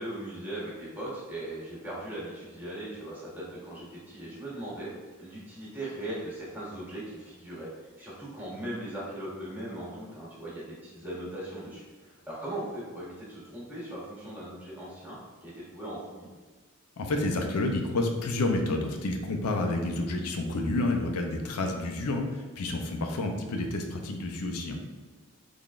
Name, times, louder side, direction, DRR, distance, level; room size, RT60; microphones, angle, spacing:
voice 1, 0.0-4.9 5.2-16.3, right 1 dB, 10° right, -7 dB, 1.2 m, -39 dB
voice 2, 17.0-24.9, left 2 dB, 85° left, 3 dB, 0.5 m, -29 dB
3.8 x 3.3 x 2.4 m, 1.4 s
head